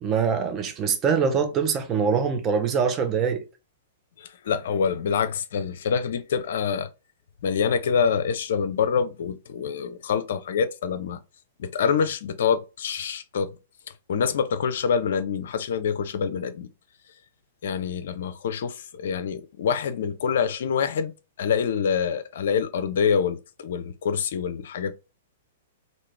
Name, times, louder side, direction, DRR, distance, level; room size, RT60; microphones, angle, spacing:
voice 1, 0.0-3.4, right 6 dB, 25° right, 0.6 m, -23 dB
voice 2, 4.2-6.9 7.4-11.2 11.6-13.5 14.1-16.7 17.6-21.1 21.4-25.0, left 6 dB, 60° left, 0.4 m, -26 dB
2.9 x 2.7 x 3.3 m
figure-of-eight pair, 105°, 0 cm